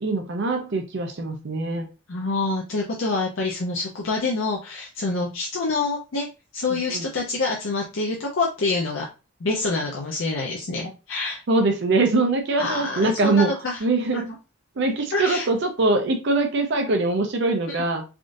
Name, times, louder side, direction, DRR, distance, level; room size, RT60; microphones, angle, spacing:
voice 1, 0.0-1.9 6.9-7.1 11.5-13.5 13.8-14.3 14.8-18.0, right 3 dB, 55° right, 5 dB, 0.5 m, -22 dB
voice 2, 2.1-6.3 6.5-9.1 9.4-11.4 12.5-13.9 14.1-14.2 15.1-15.5 17.7-17.8, left 3 dB, 60° left, -1 dB, 0.5 m, -26 dB
3.5 x 2.4 x 2.6 m, 0.30 s
head